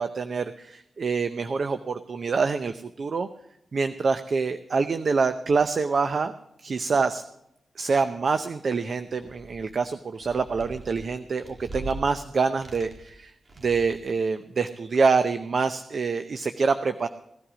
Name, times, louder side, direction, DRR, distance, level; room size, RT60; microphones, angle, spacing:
voice 1, 0.0-3.3 3.7-6.3 6.6-7.2 7.8-13.3 13.6-17.1, right 4 dB, 60° right, 10 dB, 0.6 m, -26 dB
sound 1, 9.1-9.7 10.1-12.1 12.5-13.2 13.5-14.1, right 2 dB, 45° right, 1.8 m, -41 dB
17.5 x 11.5 x 5.0 m, 0.82 s
cardioid pair, 55°, 0 cm